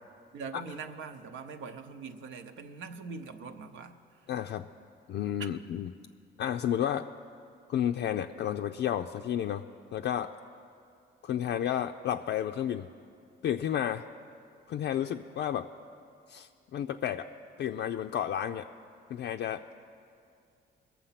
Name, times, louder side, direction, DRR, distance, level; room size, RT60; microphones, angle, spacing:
voice 1, 0.3-4.0 5.4-5.5, right 5 dB, 75° right, 7 dB, 0.9 m, -42 dB
voice 2, 4.3-4.6 5.1-5.9 6.4-7.1 7.7-9.7 9.9-10.3 11.2-12.9 13.4-14.0 14.7-15.7 16.3-17.3 17.6-18.7 19.1-19.7, left 10 dB, 60° left, 4 dB, 0.4 m, -31 dB
21.0 x 7.1 x 5.8 m, 2.4 s
cardioid pair, 90°, 20 cm